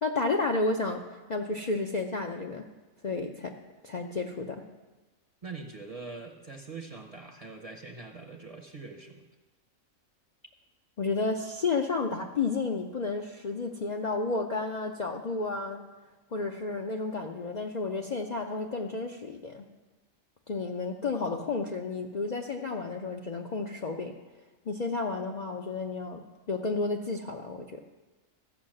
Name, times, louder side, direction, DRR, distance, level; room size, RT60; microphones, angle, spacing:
voice 1, 0.0-1.0 1.3-2.7 3.0-3.6 3.8-4.6 11.0-15.8 16.3-19.6 20.5-24.2 24.7-27.8, left 3 dB, 45° left, 2 dB, 0.6 m, -31 dB
voice 2, 5.4-9.2, right 3 dB, 30° right, 4 dB, 0.8 m, -43 dB
13.5 x 5.6 x 7.6 m, 1.2 s
omnidirectional pair, 1.4 m